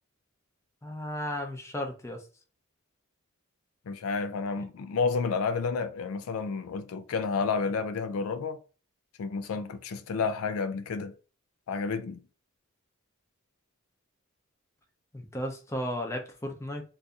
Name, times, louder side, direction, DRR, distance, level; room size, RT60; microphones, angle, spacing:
voice 1, 0.8-2.2 15.1-16.8, left 1 dB, 15° left, 0.6 m, -34 dB
voice 2, 3.9-8.6 9.2-11.1 11.7-12.2, left 5 dB, 85° left, 0.4 m, -30 dB
2.6 x 2.6 x 3.5 m
head